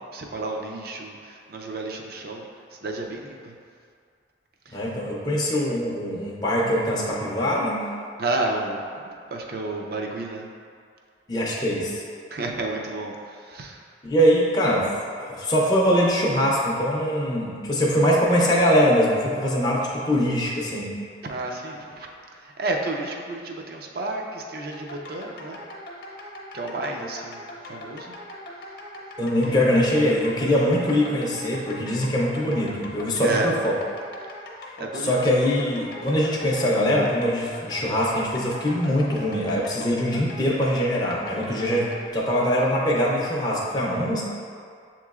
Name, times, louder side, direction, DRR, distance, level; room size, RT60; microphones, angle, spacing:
voice 1, 0.0-2.4 2.7-3.5 4.7-4.8 8.2-8.8 9.3-10.5 12.3-13.8 21.2-22.1 22.4-25.6 26.5-28.2 29.4-29.6 33.2-33.5 34.8-35.1, right 2 dB, 55° right, 1 dB, 0.5 m, -31 dB
voice 2, 4.7-7.9 11.3-12.0 14.0-14.9 15.3-20.9 29.2-33.7 34.9-44.2, equal, 20° left, -4 dB, 0.5 m, -22 dB
sound 1, 24.7-42.1, left 1 dB, 50° left, 0.8 m, -40 dB
7.2 x 3.0 x 2.4 m, 2.2 s
head